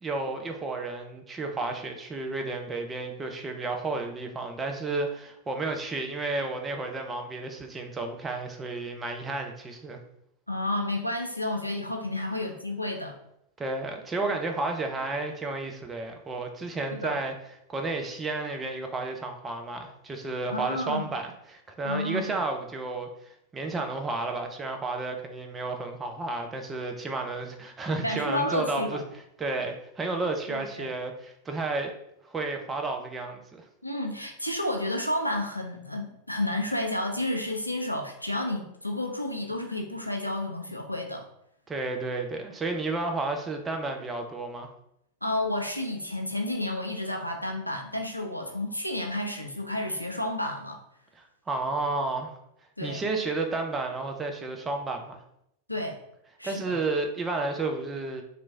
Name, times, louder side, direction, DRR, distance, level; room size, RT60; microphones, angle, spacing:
voice 1, 0.0-10.0 13.6-17.3 17.7-23.1 23.5-29.0 29.4-31.9 32.2-33.6 41.7-44.7 51.2-52.3 52.8-55.2 56.4-58.2, right 3 dB, 15° right, 3 dB, 0.5 m, -32 dB
voice 2, 10.5-13.1 16.9-17.2 20.5-21.1 21.8-22.3 28.0-29.0 30.5-30.9 33.8-41.3 45.2-50.8 52.8-53.0 55.7-56.0 56.4-56.8, left 1 dB, 90° left, 3 dB, 0.4 m, -31 dB
3.1 x 2.5 x 3.3 m, 0.76 s
figure-of-eight pair, 90°, 0 cm